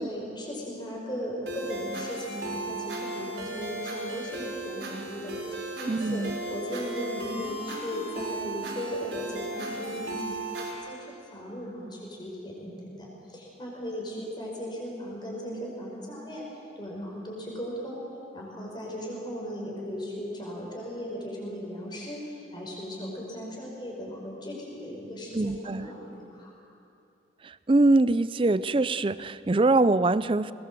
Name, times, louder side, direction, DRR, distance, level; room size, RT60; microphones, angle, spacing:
voice 1, 0.0-16.5 16.8-18.0 18.3-26.5, equal, 25° left, -2 dB, 5.4 m, -37 dB
sound 1, 1.5-10.7, right 2 dB, 80° right, 4.7 m, -36 dB
voice 2, 5.9-6.4 25.3-25.9 27.4-30.5, right 2 dB, 30° right, 16 dB, 0.5 m, -23 dB
21.0 x 20.5 x 7.6 m, 2.7 s
head